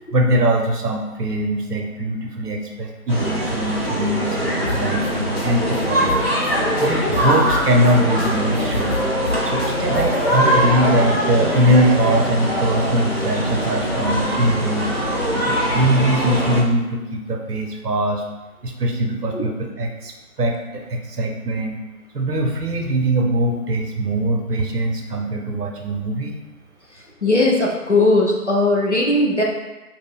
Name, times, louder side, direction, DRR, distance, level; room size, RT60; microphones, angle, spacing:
voice 1, 0.0-6.5 6.8-9.0 9.4-14.9 15.5-18.2 18.6-21.8 22.1-26.4, right 1 dB, 85° right, 2 dB, 0.7 m, -21 dB
sound 1, 3.1-16.6, equal, 45° right, 0.4 m, -22 dB
sound 2, 4.7-5.1 5.4-5.5 5.7-5.8 6.1-6.5 6.8-7.9 8.2-8.3 8.5-10.2, left 2 dB, 80° left, 0.8 m, -29 dB
voice 2, 27.2-29.4, left 2 dB, 50° left, -2 dB, 0.4 m, -18 dB
2.4 x 2.2 x 3.4 m, 1.1 s
figure-of-eight pair, 170°, 46 cm